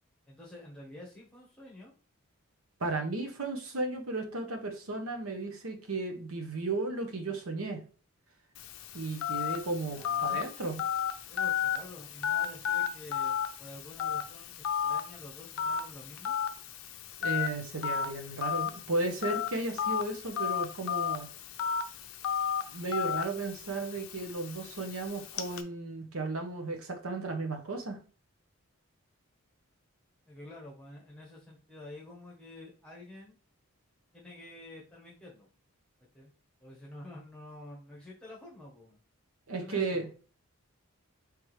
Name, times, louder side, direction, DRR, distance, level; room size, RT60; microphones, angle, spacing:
voice 1, 0.3-1.9 9.8-10.6 11.3-16.3 30.3-33.4 34.1-35.5 36.1-36.3 36.6-39.0 39.5-40.2, left 1 dB, 5° left, -4 dB, 1.2 m, -49 dB
voice 2, 2.8-7.8 8.9-10.8 17.2-21.3 22.7-28.0 39.5-40.1, right 3 dB, 70° right, 4 dB, 0.9 m, -34 dB
Telephone, 8.6-25.6, left 8 dB, 65° left, 0.5 m, -34 dB
4.7 x 3.4 x 3.2 m, 0.38 s
head